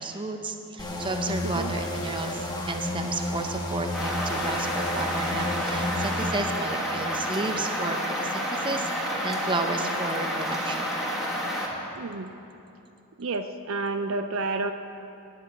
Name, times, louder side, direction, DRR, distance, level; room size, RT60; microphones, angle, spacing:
voice 1, 0.0-2.4 2.7-10.9, right 2 dB, 20° right, 5 dB, 0.7 m, -32 dB
sound 1, 0.8-6.3, left 1 dB, 20° left, 1.1 m, -31 dB
sound 2, 3.9-11.7, equal, ahead, 1.6 m, -29 dB
voice 2, 12.0-12.3 13.2-14.7, right 3 dB, 60° right, 8 dB, 0.5 m, -30 dB
9.6 x 7.9 x 8.8 m, 2.8 s
head